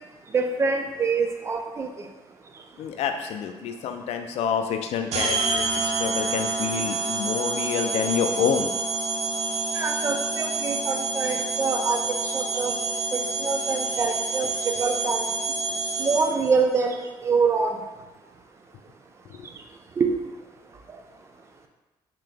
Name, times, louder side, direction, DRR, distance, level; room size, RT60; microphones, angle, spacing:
voice 1, 0.3-2.1 9.7-12.7 13.1-15.2 16.0-17.8 20.0-20.2, right 4 dB, 25° right, 4 dB, 0.3 m, -25 dB
voice 2, 2.8-8.7 19.3-19.5, left 7 dB, 90° left, 6 dB, 0.4 m, -28 dB
sound 1, 5.1-16.5, right 3 dB, 90° right, 0.5 m, -28 dB
3.5 x 2.8 x 3.4 m, 1.1 s
wide cardioid pair, 170°, 11 cm